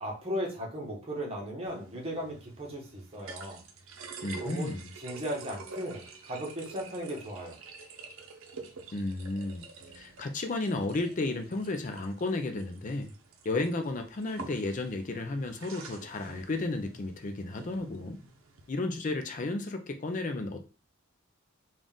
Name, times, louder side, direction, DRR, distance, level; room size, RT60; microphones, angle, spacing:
voice 1, 0.0-3.6 4.4-7.6, equal, 30° right, -2 dB, 1.1 m, -37 dB
sound 1, 1.7-18.7, right 4 dB, 70° right, 0.7 m, -48 dB
voice 2, 4.2-4.9 8.9-9.7 9.9-13.1 13.4-18.2 18.7-20.6, left 2 dB, 35° left, 6 dB, 0.4 m, -33 dB
3.8 x 2.5 x 3.6 m, 0.35 s
head